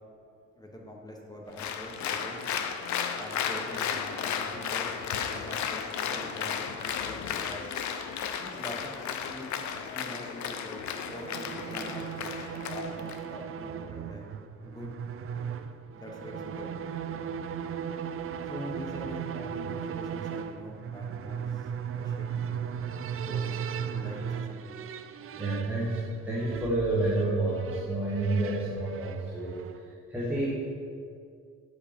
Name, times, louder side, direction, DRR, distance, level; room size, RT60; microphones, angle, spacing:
voice 1, 0.6-2.4 3.2-4.9 5.2-7.7 8.4-9.5 9.8-10.8 11.1-12.1 12.5-14.2 14.6-14.9 15.9-17.3 18.5-21.7 22.0-22.7 23.3-24.9, left 1 dB, 15° left, 0 dB, 1.1 m, -44 dB
Applause, 1.6-13.2, left 7 dB, 70° left, 0.7 m, -34 dB
sound 1, 10.8-29.9, right 7 dB, 45° right, 0.4 m, -37 dB
voice 2, 25.3-29.5 30.1-30.5, right 2 dB, 5° right, -7 dB, 1.5 m, -29 dB
8.6 x 5.2 x 5.1 m, 2.3 s
cardioid pair, 90°, 30 cm